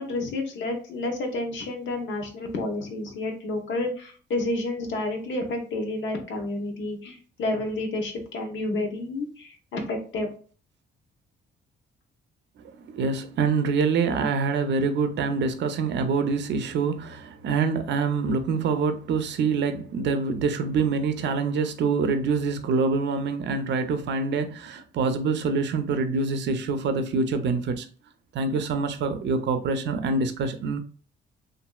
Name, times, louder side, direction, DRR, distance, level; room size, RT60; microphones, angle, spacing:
voice 1, 0.0-10.3, left 2 dB, 70° left, 0.9 m, -30 dB
voice 2, 12.9-27.9 28.3-30.8, right 4 dB, 65° right, 0.5 m, -25 dB
3.0 x 2.5 x 2.2 m
cardioid pair, 90°, 20 cm